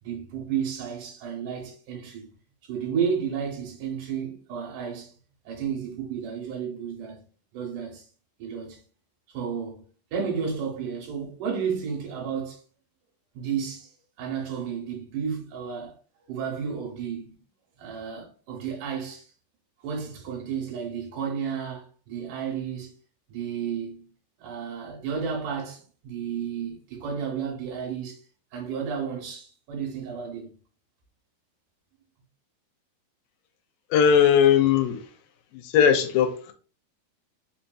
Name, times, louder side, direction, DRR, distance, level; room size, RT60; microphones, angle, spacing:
voice 1, 0.0-2.3 2.7-5.1 5.5-7.2 7.5-8.1 8.4-8.8 9.3-9.8 10.1-12.6 13.3-13.9 14.2-15.9 16.3-17.4 17.8-19.3 19.8-22.9 23.3-24.1 24.4-28.2 28.5-30.5, right 7 dB, 75° right, 2.6 m, -32 dB
voice 2, 33.9-35.0 35.5-36.5, left 8 dB, 90° left, 2.3 m, -19 dB
5.7 x 2.7 x 2.3 m
omnidirectional pair, 3.9 m